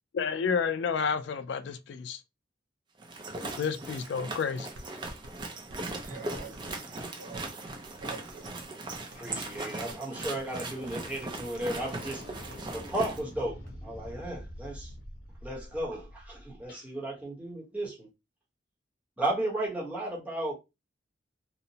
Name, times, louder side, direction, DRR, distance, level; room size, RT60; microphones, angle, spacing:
voice 1, 0.1-2.2 3.6-4.7, left 6 dB, 65° left, 0.3 m, -30 dB
sound 1, 3.0-13.2, right 2 dB, 25° right, 0.4 m, -39 dB
sound 2, 4.7-12.7 13.0-13.1 13.4-13.7, right 1 dB, 85° right, 0.8 m, -50 dB
voice 2, 5.9-7.4 8.0-8.6, right 4 dB, 45° right, 1.2 m, -46 dB
voice 3, 9.1-12.2 12.7-14.9 15.4-18.1 19.2-20.5, right 1 dB, 5° right, 0.8 m, -34 dB
sound 3, 10.2-10.4 10.7-16.9, equal, 50° left, 0.7 m, -46 dB
2.9 x 2.0 x 2.7 m
head